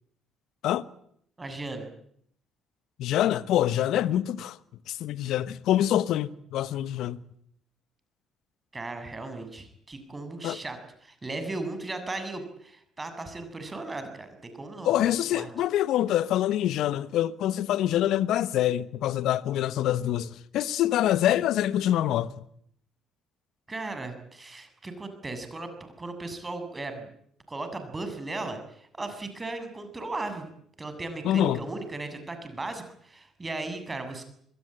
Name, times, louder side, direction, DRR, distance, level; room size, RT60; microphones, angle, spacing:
voice 1, 1.4-1.9 8.7-10.8 11.0-15.5 23.7-27.1 27.5-30.5 30.8-34.2, right 2 dB, 25° right, 7.3 m, -36 dB
voice 2, 3.0-4.6 4.9-7.2 10.4-10.6 14.8-22.3 31.2-31.6, left 12 dB, 70° left, 1.1 m, -25 dB
25.5 x 21.5 x 9.0 m
hypercardioid pair, 55°, 0 cm